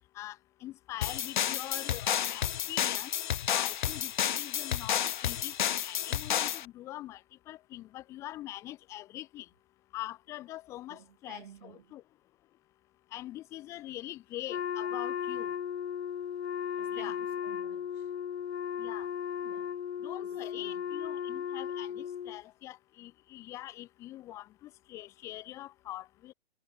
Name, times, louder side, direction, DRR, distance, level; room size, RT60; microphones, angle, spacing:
voice 1, 0.1-3.1 3.5-7.2 7.5-9.5 9.9-12.0 13.1-15.5 16.9-17.2 18.8-19.1 20.0-26.3, left 15 dB, 10° left, 0.7 m, -43 dB
sound 1, 1.0-6.6, left 10 dB, 50° left, 0.6 m, -31 dB
voice 2, 10.9-12.0 16.8-18.1 19.4-19.8 20.2-20.8, right 10 dB, 55° right, 4.0 m, -54 dB
Wind instrument woodwind instrument, 14.5-22.4, left 9 dB, 80° left, 1.1 m, -36 dB
hypercardioid pair, 165°, 31 cm